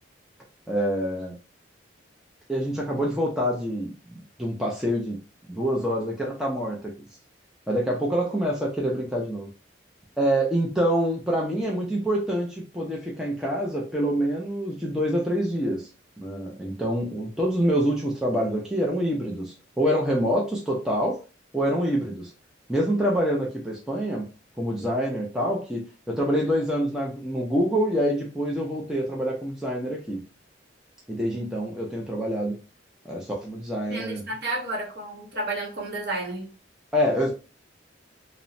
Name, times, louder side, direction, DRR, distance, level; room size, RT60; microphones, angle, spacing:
voice 1, 0.7-1.4 2.5-5.2 5.5-6.9 7.7-9.5 10.2-15.9 16.2-21.2 21.5-22.3 22.7-24.3 24.6-30.2 31.1-32.5 33.1-34.2 36.9-37.3, equal, 5° right, -3 dB, 0.4 m, -26 dB
voice 2, 33.9-36.5, right 2 dB, 55° right, -1 dB, 0.9 m, -31 dB
2.9 x 2.1 x 2.5 m, 0.33 s
head